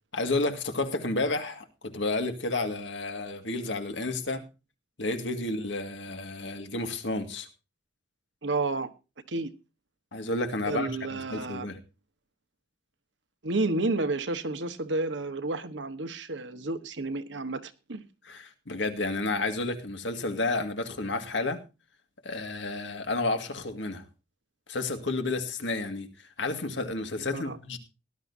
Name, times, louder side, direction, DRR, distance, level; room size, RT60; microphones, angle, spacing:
voice 1, 0.1-4.4 5.0-7.5 10.1-11.8 18.2-21.6 22.2-24.0 24.7-27.8, left 2 dB, 85° left, 7 dB, 2.0 m, -31 dB
voice 2, 8.4-8.9 9.3-9.5 10.7-11.7 13.4-18.0 27.2-27.6, right 2 dB, 80° right, 10 dB, 1.3 m, -31 dB
18.5 x 11.5 x 2.7 m, 0.29 s
head